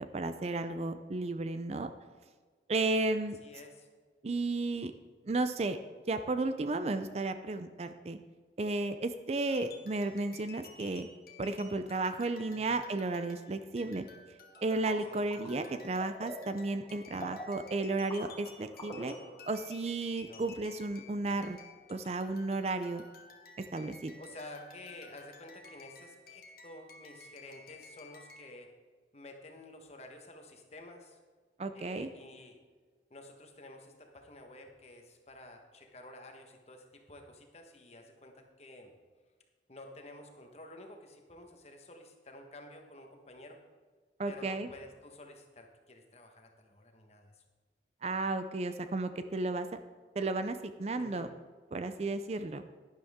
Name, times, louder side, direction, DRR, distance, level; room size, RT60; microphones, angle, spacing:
voice 1, 0.1-1.9 2.7-3.4 4.2-4.9 5.3-5.8 6.1-8.2 8.6-11.1 11.4-14.1 14.6-19.1 19.5-21.6 21.9-23.0 23.7-24.1 31.6-32.1 44.2-44.7 48.0-49.7 50.2-51.3 51.7-52.7, right 2 dB, 35° right, 10 dB, 0.4 m, -33 dB
voice 2, 3.4-3.9 12.5-12.8 15.1-15.2 20.2-20.5 24.2-28.7 29.1-31.2 31.7-32.6 33.1-38.9 39.7-43.6 44.3-47.4 50.9-51.3, left 1 dB, 35° left, 3 dB, 1.3 m, -51 dB
sound 1, 9.5-28.6, left 3 dB, 55° left, 1.3 m, -54 dB
sound 2, 14.6-19.6, equal, 20° left, 2.1 m, -48 dB
12.0 x 10.5 x 3.6 m, 1.5 s
head